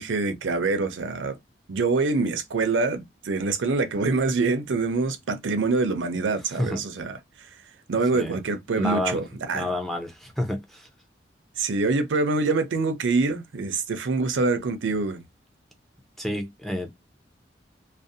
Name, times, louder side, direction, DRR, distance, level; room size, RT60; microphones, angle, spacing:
voice 1, 0.0-1.4 1.7-7.2 7.9-9.7 11.6-15.2, right 3 dB, 85° right, 0.5 m, -25 dB
voice 2, 6.5-6.8 8.1-8.4 8.8-9.2 9.5-10.9 16.2-16.9, left 1 dB, ahead, 0.4 m, -29 dB
2.5 x 2.0 x 2.6 m
head